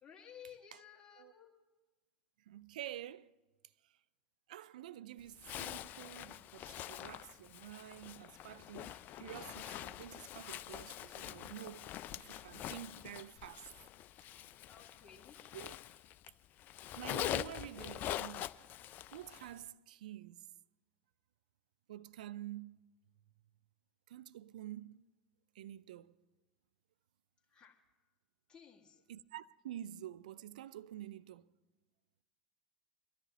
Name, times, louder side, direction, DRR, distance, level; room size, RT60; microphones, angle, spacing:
voice 1, 0.0-1.5 14.7-15.4 27.5-27.8 28.5-29.0, left 8 dB, 20° left, 1.7 m, -56 dB
voice 2, 2.5-3.3 3.8-3.9 4.5-11.9 12.2-13.7 15.5-15.8 16.9-18.5 19.1-20.5 21.9-22.8 24.1-25.0 25.5-26.2 29.1-31.5, right 12 dB, 75° right, 0.3 m, -49 dB
Zipper (clothing), 5.4-16.3 16.6-19.5, left 12 dB, 45° left, 0.4 m, -44 dB
23.0 x 13.0 x 3.0 m
hypercardioid pair, 75°, 4 cm